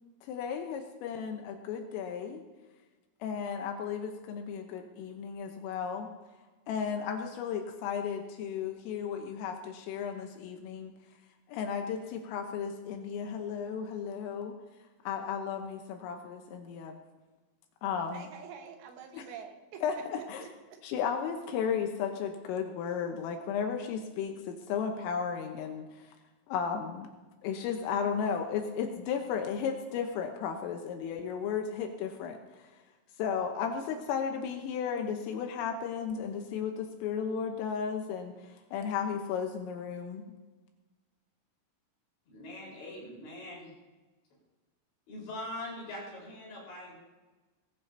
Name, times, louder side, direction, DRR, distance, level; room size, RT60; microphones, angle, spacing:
voice 1, 0.3-2.4 3.2-6.1 6.7-10.9 11.5-14.5 15.1-17.0 17.8-18.3 19.1-19.3 19.8-20.4 20.8-26.1 26.5-27.1 27.4-32.7 33.2-38.3 38.7-40.3, left 7 dB, 80° left, 4 dB, 3.6 m, -34 dB
voice 2, 18.1-19.8 20.4-20.8, right 7 dB, 70° right, 3 dB, 3.2 m, -47 dB
voice 3, 42.3-43.7 45.1-47.0, left 1 dB, 60° left, -4 dB, 6.7 m, -42 dB
20.5 x 15.0 x 2.8 m, 1.2 s
omnidirectional pair, 6.0 m